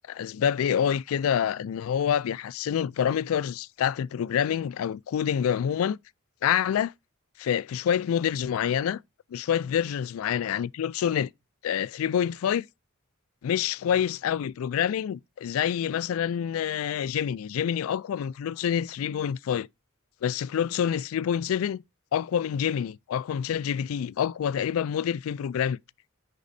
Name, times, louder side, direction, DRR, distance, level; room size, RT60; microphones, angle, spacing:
voice 1, 0.1-6.0 6.4-6.9 7.4-9.0 9.3-11.3 11.6-12.7 13.4-19.7 20.2-21.8 22.1-25.8, left 8 dB, 80° left, 0.3 m, -27 dB
10.0 x 4.1 x 2.6 m
head